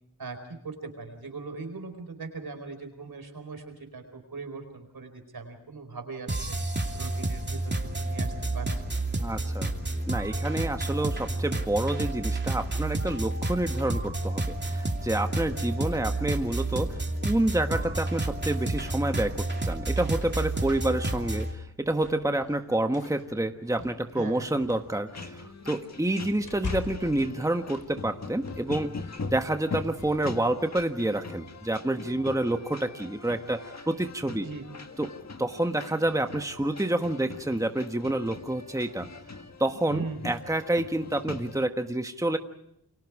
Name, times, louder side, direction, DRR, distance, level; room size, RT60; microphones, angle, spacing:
voice 1, 0.2-6.6 6.9-9.1 24.2-24.5 34.4-34.6 39.9-40.3, right 4 dB, 75° right, 7 dB, 4.6 m, -40 dB
sound 1, 6.3-21.5, right 2 dB, 30° right, 2.7 m, -30 dB
voice 2, 9.2-9.7 10.1-28.9 29.3-34.5 35.0-35.1 35.4-39.1 39.6-42.4, right 1 dB, 10° right, 7 dB, 1.4 m, -28 dB
sound 2, 21.7-30.8, left 4 dB, 75° left, 4.4 m, -44 dB
sound 3, 25.1-41.7, left 3 dB, 45° left, 1.7 m, -42 dB
29.5 x 23.0 x 4.9 m, 0.77 s
cardioid pair, 50°, 36 cm